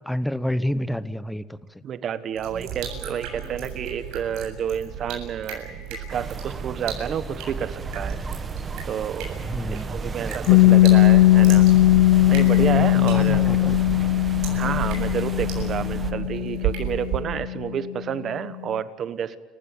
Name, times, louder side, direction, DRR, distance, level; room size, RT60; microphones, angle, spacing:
voice 1, 0.1-1.8 9.5-10.8 12.6-14.0, equal, 5° left, 14 dB, 0.9 m, -30 dB
voice 2, 1.8-8.2 8.9-9.3 9.7-11.7 12.3-13.5 14.5-19.4, right 8 dB, 40° right, 13 dB, 1.2 m, -30 dB
sound 1, 2.3-17.2, right 8 dB, 70° right, 7.7 m, -35 dB
sound 2, 6.1-16.1, right 4 dB, 25° right, 1.4 m, -34 dB
Piano, 10.5-17.8, left 15 dB, 75° left, 0.9 m, -18 dB
29.5 x 15.5 x 9.5 m, 1.5 s
cardioid pair, 135°, 0 cm